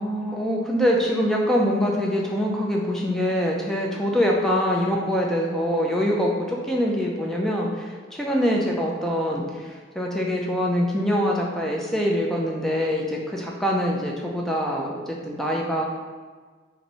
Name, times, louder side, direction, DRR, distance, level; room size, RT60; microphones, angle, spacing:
voice 1, 0.0-15.8, equal, ahead, -2 dB, 0.4 m, -24 dB
2.9 x 2.6 x 4.1 m, 1.5 s
head